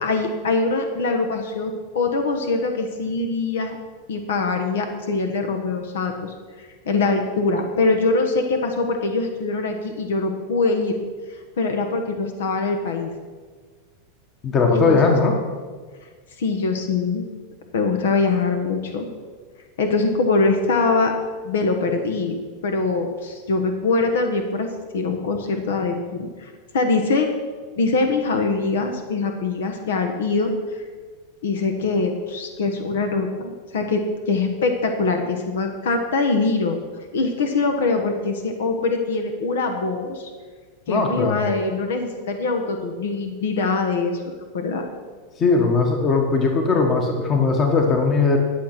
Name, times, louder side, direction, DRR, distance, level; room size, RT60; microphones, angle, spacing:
voice 1, 0.0-3.8 4.1-11.0 11.3-13.1 14.7-15.1 16.0-16.1 16.4-17.3 17.7-19.1 19.8-21.1 21.4-22.4 22.6-27.3 27.7-30.9 31.4-40.3 40.9-44.8, left 3 dB, 90° left, 5 dB, 1.2 m, -23 dB
voice 2, 14.4-15.3 40.9-41.4 45.4-48.4, left 4 dB, 25° left, 3 dB, 1.2 m, -19 dB
11.5 x 6.5 x 5.9 m, 1.5 s
supercardioid pair, 145°, 0 cm